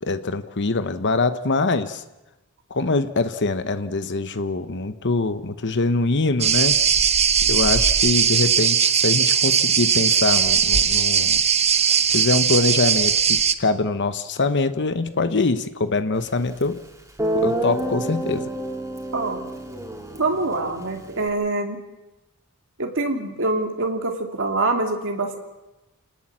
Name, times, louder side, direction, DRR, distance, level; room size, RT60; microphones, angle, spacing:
voice 1, 0.0-2.0 2.7-6.7 7.4-11.4 12.1-16.8 17.3-18.4, left 3 dB, 55° left, 11 dB, 1.0 m, -23 dB
sound 1, 6.4-13.5, right 7 dB, 30° right, 1.0 m, -19 dB
Guitar, 16.6-16.7 17.2-21.3, right 1 dB, 15° right, 3.3 m, -28 dB
voice 2, 19.1-19.5 20.2-21.8 22.8-25.4, right 2 dB, 60° right, 3 dB, 2.3 m, -25 dB
28.5 x 19.0 x 7.5 m, 1.0 s
head